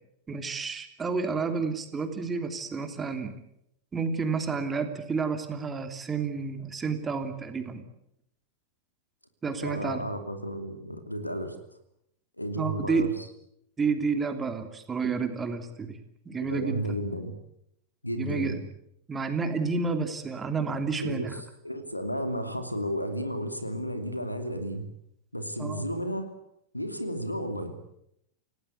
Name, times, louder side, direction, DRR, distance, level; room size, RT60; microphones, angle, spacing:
voice 1, 0.3-3.3 3.9-7.9 9.4-10.0 12.6-13.1 13.8-16.0 16.2-17.0 18.2-18.6 19.1-21.4 25.6-25.8, right 4 dB, 15° right, 7 dB, 3.1 m, -30 dB
voice 2, 9.6-11.6 12.4-13.2 16.4-17.3 18.0-18.6 21.0-21.3 21.6-24.8 25.3-26.3 26.7-27.7, equal, 85° left, 8 dB, 2.8 m, -33 dB
28.5 x 18.0 x 8.2 m, 0.78 s
figure-of-eight pair, 90°, 0 cm